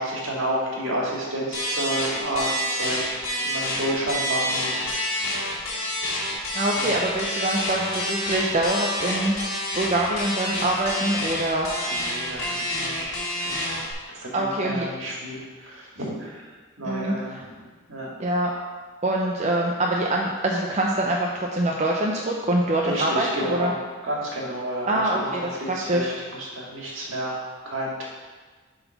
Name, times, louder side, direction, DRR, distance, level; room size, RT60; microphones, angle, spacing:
voice 1, 0.0-3.2 3.4-4.8 6.7-7.0 11.9-13.9 14.1-16.4 16.8-17.4 17.9-18.1 22.8-23.7 24.0-25.3 25.7-26.1 26.4-27.4 27.7-28.1, right 1 dB, 70° right, -3 dB, 2.0 m, -30 dB
sound 1, 1.5-13.9, left 1 dB, 65° left, 1.9 m, -28 dB
voice 2, 6.5-9.3 9.7-11.7 14.3-14.9 16.8-17.4 18.2-18.5 19.0-23.7 24.9-26.1, right 1 dB, 35° right, -1 dB, 0.6 m, -24 dB
7.7 x 4.0 x 5.8 m, 1.4 s
head